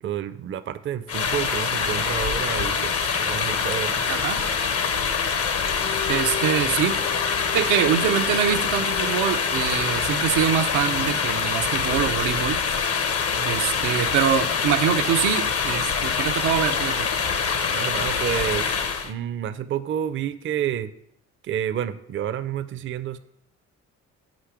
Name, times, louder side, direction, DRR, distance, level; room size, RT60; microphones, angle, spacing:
voice 1, 0.0-4.0 17.7-20.9 21.4-23.2, right 9 dB, 40° right, 10 dB, 0.5 m, -29 dB
sound 1, 1.1-19.1, left 6 dB, 50° left, 0.8 m, -25 dB
voice 2, 4.1-4.4 6.1-7.0 7.5-12.6 13.4-17.1, right 9 dB, 90° right, 6 dB, 0.6 m, -24 dB
Bowed string instrument, 5.6-10.1, left 8 dB, 15° left, 0.5 m, -36 dB
5.5 x 5.1 x 5.9 m, 0.72 s
cardioid pair, 90°, 30 cm